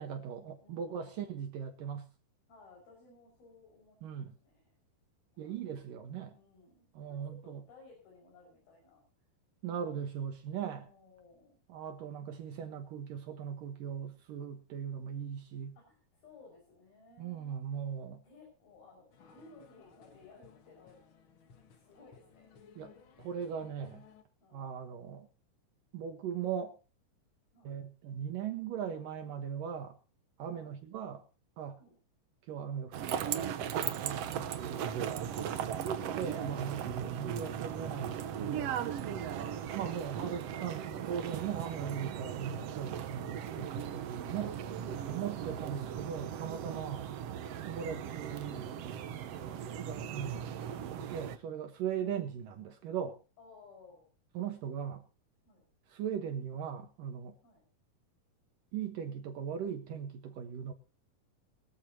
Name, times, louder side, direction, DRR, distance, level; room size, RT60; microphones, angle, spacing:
voice 1, 0.0-2.1 4.0-4.3 5.4-6.3 6.9-7.6 9.6-10.9 11.7-15.7 17.2-18.2 22.8-22.9 23.2-24.0 24.5-25.3 25.9-26.8 27.6-30.0 30.4-31.2 31.6-31.8 32.5-35.2 35.8-38.7 39.7-44.6 45.1-47.1 47.7-48.7 49.8-50.4 50.9-53.2 54.3-55.0 55.9-57.4 58.7-60.7, right 8 dB, 70° right, 2.8 m, -39 dB
voice 2, 0.6-1.3 2.5-4.6 5.3-5.7 6.3-9.0 10.8-11.6 15.8-17.6 18.2-21.0 21.7-22.5 24.4-24.8 27.5-27.8 30.5-30.7 31.8-32.0 35.5-35.8 36.9-37.2 39.2-39.7 43.5-44.2 44.9-45.3 50.8-51.0 52.0-52.3 53.4-54.1 55.5-55.7 57.4-57.6, left 3 dB, 80° left, 7.5 m, -59 dB
sound 1, 19.1-24.2, left 6 dB, 55° left, 1.5 m, -59 dB
sound 2, 32.9-51.4, right 9 dB, 85° right, 1.3 m, -38 dB
21.5 x 14.0 x 2.9 m
omnidirectional pair, 4.2 m